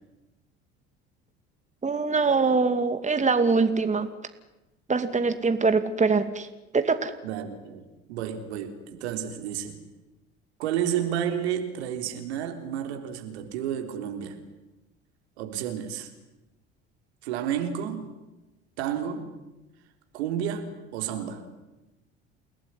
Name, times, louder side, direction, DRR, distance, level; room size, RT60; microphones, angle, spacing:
voice 1, 1.8-4.1 4.9-6.5 6.7-7.1, right 4 dB, 20° right, 9 dB, 2.5 m, -23 dB
voice 2, 7.2-9.8 10.6-14.4 15.4-16.1 17.2-18.1 18.8-19.3 20.1-21.5, right 9 dB, 75° right, 6 dB, 3.7 m, -31 dB
29.0 x 18.0 x 9.9 m, 1.0 s
hypercardioid pair, 65°, 33 cm